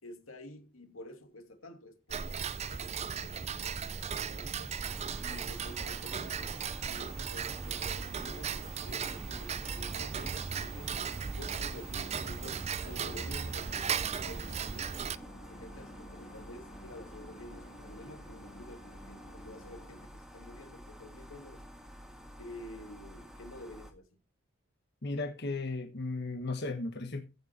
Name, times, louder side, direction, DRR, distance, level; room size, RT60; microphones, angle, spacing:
voice 1, 0.0-4.8 5.2-6.6 6.9-11.0 11.3-13.9 14.2-15.0 15.5-21.6 22.4-24.1, left 1 dB, 90° left, 2.6 m, -50 dB
Tick-tock, 2.1-15.2, right 6 dB, 30° right, 0.5 m, -36 dB
sound 1, 3.0-20.1, equal, 35° left, 2.7 m, -54 dB
sound 2, 4.8-23.9, equal, ahead, 1.8 m, -50 dB
voice 2, 25.0-27.3, left 3 dB, 55° left, 1.5 m, -35 dB
15.5 x 6.9 x 4.4 m
head